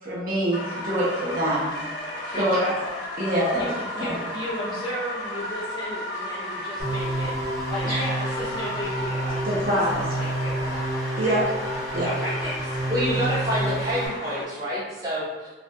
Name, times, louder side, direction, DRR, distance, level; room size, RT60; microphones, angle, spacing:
voice 1, 0.0-1.7 2.3-2.6 3.2-3.6 4.0-4.1 9.5-10.2 11.2-11.4 11.9-12.1, right 1 dB, 50° right, -7 dB, 0.6 m, -25 dB
sound 1, 0.5-14.4, left 1 dB, 90° left, 0.4 m, -34 dB
voice 2, 2.3-2.7 3.6-7.3 7.7-10.8 11.2-11.4 12.0-12.8 13.2-13.4, equal, 25° left, -7 dB, 0.4 m, -34 dB
sound 2, 6.8-14.1, right 2 dB, 80° right, 0.8 m, -29 dB
voice 3, 7.8-8.4 12.9-15.5, equal, 20° right, -11 dB, 1.0 m, -28 dB
2.4 x 2.2 x 2.6 m, 1.3 s
head